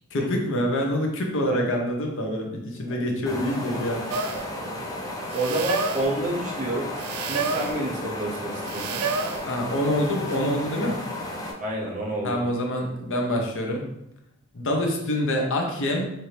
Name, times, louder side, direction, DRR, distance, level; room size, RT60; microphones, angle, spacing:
voice 1, 0.1-4.3 9.5-11.0 12.2-13.9 14.5-16.1, left 1 dB, 60° left, 1 dB, 0.8 m, -26 dB
sound 1, 3.3-11.5, left 1 dB, 15° left, 0.6 m, -34 dB
sound 2, 4.1-4.5 5.3-6.1 7.0-7.8 8.6-9.5 10.3-10.4, right 5 dB, 75° right, 0.4 m, -29 dB
voice 2, 5.3-9.0 11.6-12.4, right 1 dB, 35° right, -3 dB, 0.7 m, -29 dB
4.4 x 2.7 x 3.2 m, 0.82 s
head